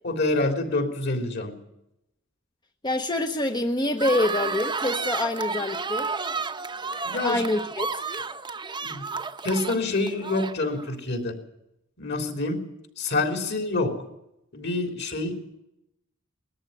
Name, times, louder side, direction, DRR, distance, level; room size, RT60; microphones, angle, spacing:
voice 1, 0.0-1.6 7.0-7.4 8.8-9.1 9.4-11.4 12.0-12.7 13.0-14.0 14.5-15.3, left 2 dB, 55° left, 5 dB, 3.5 m, -27 dB
voice 2, 2.8-6.1 7.2-7.9, left 1 dB, 20° left, 5 dB, 0.9 m, -26 dB
sound 1, 4.0-10.9, right 4 dB, 20° right, 0.9 m, -31 dB
20.0 x 13.5 x 9.8 m, 0.85 s
head